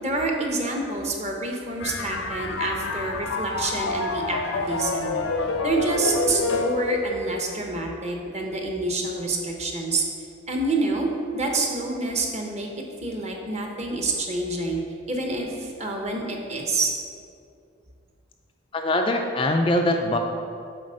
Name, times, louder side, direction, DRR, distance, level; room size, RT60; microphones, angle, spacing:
voice 1, 0.0-5.1 5.6-10.0 10.5-12.7 13.0-14.8 15.1-16.9, right 2 dB, 35° right, 1 dB, 1.0 m, -27 dB
sound 1, 1.8-7.0, left 3 dB, 75° left, 0.7 m, -28 dB
voice 2, 18.7-20.2, left 1 dB, 25° left, 3 dB, 0.4 m, -22 dB
8.1 x 4.2 x 6.4 m, 2.4 s
head